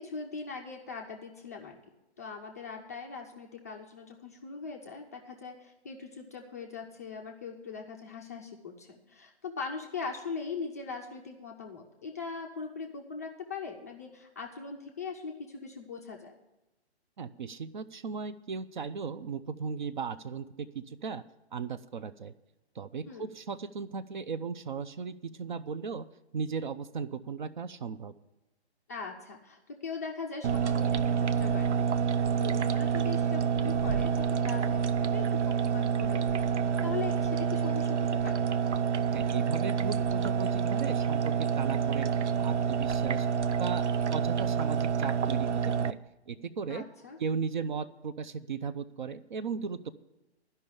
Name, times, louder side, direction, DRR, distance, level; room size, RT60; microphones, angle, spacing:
voice 1, 0.0-1.8 2.2-16.4 23.1-23.3 28.9-31.9 32.2-36.4 36.8-38.4 46.7-47.2, left 5 dB, 15° left, 0 dB, 0.4 m, -40 dB
voice 2, 17.2-21.2 21.5-22.3 22.8-26.1 26.3-28.1 39.1-42.1 42.4-43.3 43.6-46.0 46.3-46.9 47.2-49.9, right 5 dB, 45° right, 14 dB, 0.5 m, -36 dB
sound 1, 30.4-45.9, right 7 dB, 90° right, 0.6 m, -28 dB
11.5 x 5.5 x 8.7 m, 1.0 s
hypercardioid pair, 145°, 34 cm